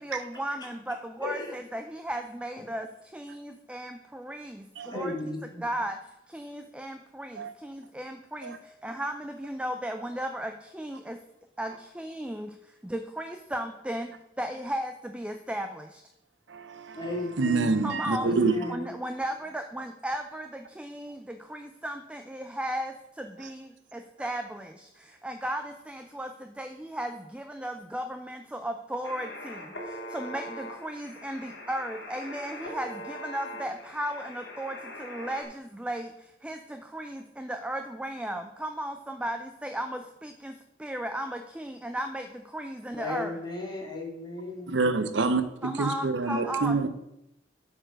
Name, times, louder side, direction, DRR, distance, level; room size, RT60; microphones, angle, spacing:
voice 1, 0.0-5.1 5.6-6.0 6.3-11.2 11.6-16.0 17.8-18.3 18.7-43.4 45.6-46.9, right 1 dB, 5° right, 0.4 m, -36 dB
voice 2, 1.2-1.6 4.8-5.7 16.9-17.7 18.2-18.9 42.9-44.8, left 2 dB, 25° left, 2.2 m, -35 dB
voice 3, 16.5-17.0 17.4-18.7 23.4-23.5 44.7-46.9, right 3 dB, 75° right, 0.7 m, -27 dB
sound 1, 29.0-35.4, left 1 dB, 70° left, 1.9 m, -41 dB
8.6 x 4.4 x 6.3 m
head